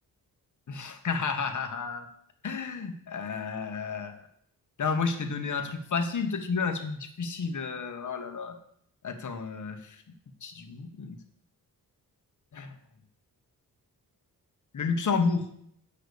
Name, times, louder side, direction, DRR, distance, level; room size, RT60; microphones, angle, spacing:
voice 1, 0.7-2.1 2.4-4.3 4.8-8.6 9.0-10.0 10.4-11.2 12.5-12.7 14.7-15.5, left 5 dB, 50° left, 6 dB, 1.3 m, -31 dB
8.2 x 5.7 x 6.9 m, 0.66 s
wide cardioid pair, 130°, 38 cm